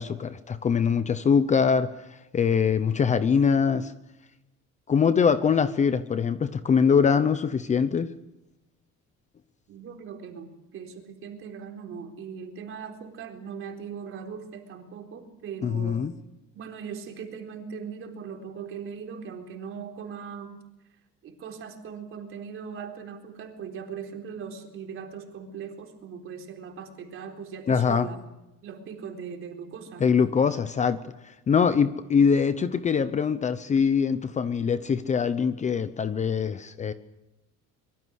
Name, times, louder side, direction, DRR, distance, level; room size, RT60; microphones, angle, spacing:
voice 1, 0.0-3.9 4.9-8.1 15.6-16.1 27.7-28.1 30.0-36.9, left 6 dB, 25° left, 12 dB, 0.8 m, -23 dB
voice 2, 9.7-16.0 16.5-20.6 21.2-28.2 28.6-30.2, right 6 dB, 45° right, 4 dB, 4.1 m, -39 dB
25.0 x 23.0 x 6.4 m, 0.96 s
cardioid pair, 165°, 30 cm